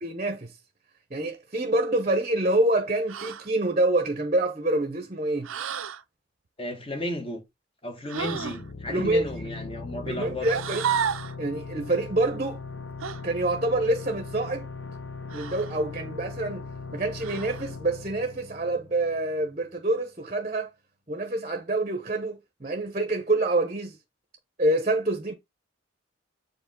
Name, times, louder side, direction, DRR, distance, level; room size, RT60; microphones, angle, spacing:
voice 1, 0.0-0.5 1.1-5.5 8.9-9.2 10.1-10.9 11.4-12.6 13.2-14.7 15.3-16.6 16.9-20.7 21.1-24.0 24.6-25.3, right 2 dB, 35° right, 0.9 m, -26 dB
sound 1, 3.1-3.5 5.4-6.0 8.1-8.6 10.4-11.4 13.0-13.2 15.3-15.8 17.2-17.7, right 7 dB, 85° right, 0.6 m, -31 dB
voice 2, 6.6-7.4 7.8-10.5, left 2 dB, 25° left, 1.6 m, -33 dB
sound 2, 8.2-19.6, left 4 dB, 65° left, 0.9 m, -39 dB
7.3 x 5.0 x 3.8 m
head